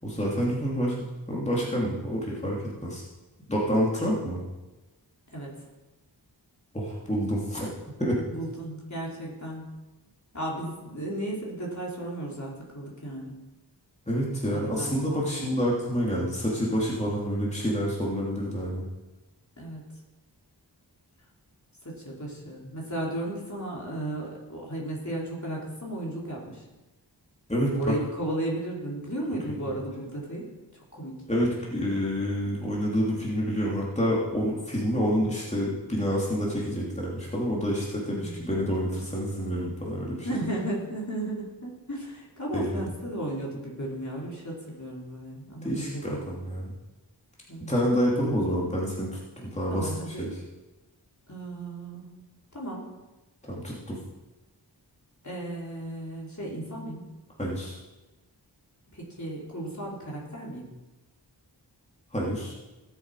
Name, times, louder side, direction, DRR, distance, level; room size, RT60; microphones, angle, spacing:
voice 1, 0.0-0.9 1.3-3.0 3.5-4.4 6.7-8.2 14.1-18.8 27.5-27.8 31.3-40.3 42.5-42.7 45.6-46.7 47.7-49.9 50.2-50.3 53.5-54.0 57.4-57.8 62.1-62.5, equal, 15° left, -5 dB, 3.0 m, -28 dB
voice 2, 8.3-9.7 10.3-13.3 14.4-15.5 19.6-19.8 21.8-26.6 27.7-30.5 30.9-31.2 38.1-38.5 40.2-46.3 47.5-47.7 49.7-50.3 51.3-52.1 52.5-52.9 55.2-57.0 58.9-60.7, right 1 dB, 40° left, -4 dB, 3.6 m, -35 dB
18.0 x 7.6 x 4.9 m, 1.1 s
wide cardioid pair, 60°, 43 cm